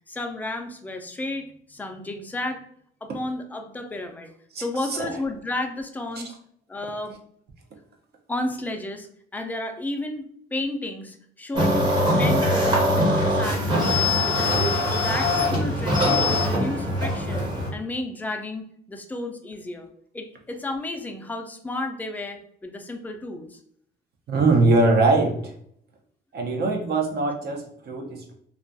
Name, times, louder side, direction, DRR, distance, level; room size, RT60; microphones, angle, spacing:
voice 1, 0.1-2.6 3.0-6.3 6.7-7.1 8.3-16.0 16.3-19.9 20.1-23.6, left 2 dB, 10° left, 5 dB, 0.3 m, -33 dB
sound 1, 11.5-17.7, left 1 dB, 25° right, 0.8 m, -22 dB
voice 2, 24.3-25.5 26.3-28.3, right 2 dB, 55° right, 2 dB, 0.6 m, -22 dB
2.3 x 2.3 x 2.5 m, 0.66 s
cardioid pair, 100°, 20 cm